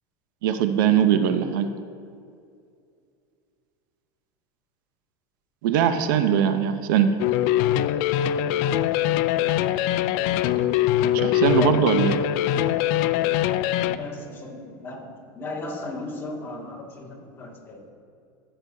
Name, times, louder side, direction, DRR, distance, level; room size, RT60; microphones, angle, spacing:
voice 1, 0.4-1.7 5.6-7.1 11.1-12.2, right 9 dB, 70° right, 9 dB, 0.7 m, -21 dB
sound 1, 7.2-14.0, left 12 dB, 60° left, 0.4 m, -22 dB
voice 2, 11.5-11.9 13.9-15.1 15.4-17.8, left 2 dB, 20° left, -3 dB, 1.9 m, -34 dB
15.0 x 7.9 x 2.7 m, 2.4 s
supercardioid pair, 135°, 11 cm